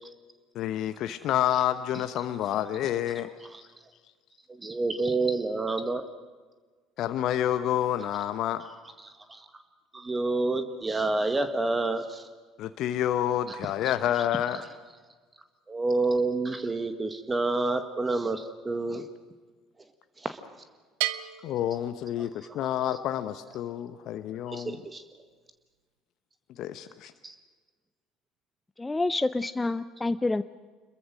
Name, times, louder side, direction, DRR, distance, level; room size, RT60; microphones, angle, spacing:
voice 1, 0.5-3.3 7.0-8.7 12.6-14.6 21.4-24.8 26.6-27.1, left 11 dB, 55° left, 10 dB, 1.0 m, -28 dB
voice 2, 4.5-6.0 9.0-9.5 9.9-12.3 13.5-13.6 15.7-19.1 20.2-20.4 22.2-22.3 24.5-25.0 27.2-27.3, right 3 dB, 20° right, 9 dB, 1.8 m, -28 dB
Bell, 21.0-22.7, right 16 dB, 70° right, 0.8 m, -35 dB
voice 3, 28.8-30.4, left 2 dB, 15° left, 13 dB, 0.6 m, -27 dB
27.0 x 22.0 x 6.5 m, 1.4 s
hypercardioid pair, 60°, 0 cm